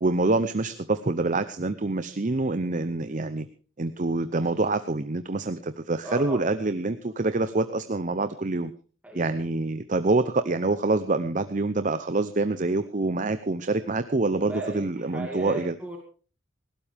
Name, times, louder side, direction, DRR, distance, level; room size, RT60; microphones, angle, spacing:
voice 1, 0.0-3.5 3.8-8.7 9.1-15.8, right 2 dB, 40° right, 11 dB, 0.7 m, -26 dB
voice 2, 6.0-6.4 9.0-9.3 14.5-16.0, right 1 dB, 5° right, 0 dB, 2.5 m, -36 dB
19.5 x 17.0 x 3.5 m, 0.39 s
head